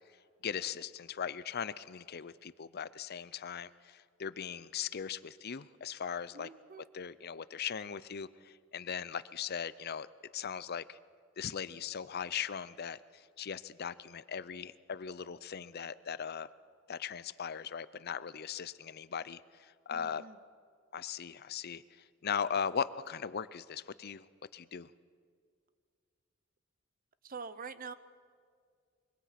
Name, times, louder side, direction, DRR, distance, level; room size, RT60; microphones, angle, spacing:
voice 1, 0.4-6.5 6.9-10.1 10.3-11.0 11.4-16.5 16.9-20.2 20.9-21.8 22.2-24.3 24.5-24.9, left 7 dB, 50° left, 17 dB, 0.6 m, -39 dB
voice 2, 6.3-6.9 19.9-20.4 27.2-27.9, right 5 dB, 45° right, 13 dB, 0.9 m, -45 dB
25.5 x 23.0 x 5.9 m, 2.1 s
head